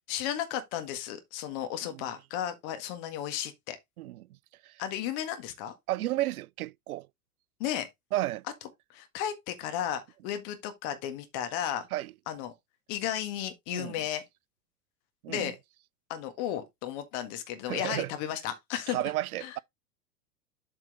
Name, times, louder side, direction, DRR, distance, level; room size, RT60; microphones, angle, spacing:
voice 1, 0.1-3.8 4.8-5.7 7.6-7.9 8.9-11.9 12.3-12.5 12.9-14.2 15.3-15.6 16.1-19.0 19.4-19.6, left 10 dB, 50° left, 1.7 m, -34 dB
voice 2, 5.9-7.1 8.1-8.4 11.9-12.1 13.7-14.0 15.2-15.5 17.7-18.1 18.9-19.6, right 15 dB, 70° right, 0.5 m, -32 dB
7.7 x 4.4 x 3.9 m
hypercardioid pair, 95°, 45 cm